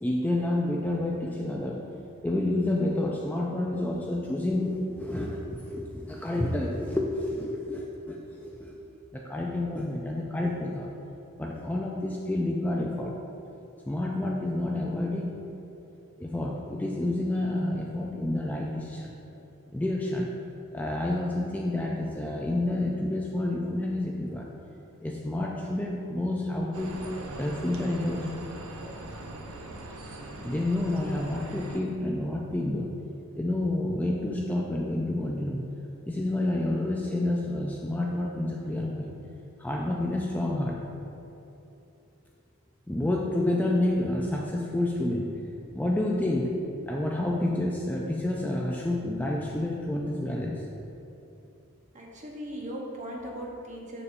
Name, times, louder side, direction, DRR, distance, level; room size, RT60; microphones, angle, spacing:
voice 1, 0.0-1.8 2.2-8.8 9.1-10.9 11.4-13.2 13.9-15.3 16.2-19.1 19.7-20.3 20.7-24.5 25.0-27.0 27.4-28.4 30.4-32.9 33.4-35.6 36.0-39.1 39.6-40.8 42.9-45.4 45.7-46.5 46.9-50.6, left 1 dB, 10° left, -2 dB, 0.3 m, -29 dB
sound 1, 26.7-31.8, right 1 dB, 75° right, 0.7 m, -41 dB
voice 2, 51.9-54.0, equal, 35° right, -2 dB, 1.0 m, -38 dB
6.9 x 6.9 x 2.5 m, 2.9 s
head